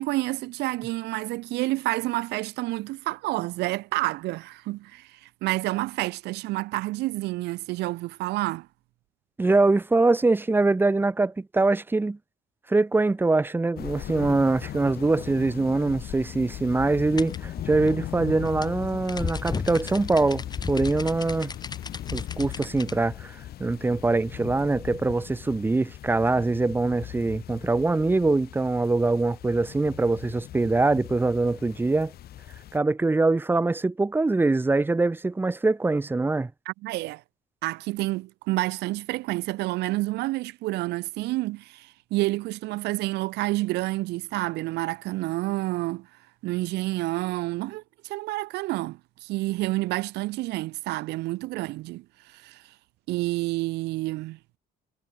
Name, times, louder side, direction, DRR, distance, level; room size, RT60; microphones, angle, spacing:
voice 1, 0.0-8.7 36.7-37.2 37.6-46.1 46.4-52.0 52.3-52.6 53.1-54.4, right 19 dB, 80° right, 0.6 m, -29 dB
voice 2, 9.4-12.2 12.7-21.5 22.1-32.1 32.7-36.5, right 3 dB, 10° right, 0.7 m, -23 dB
sound 1, 13.8-32.8, left 12 dB, 65° left, 6.5 m, -39 dB
sound 2, 17.2-23.0, left 4 dB, 25° left, 1.9 m, -35 dB
cardioid pair, 110°, 17 cm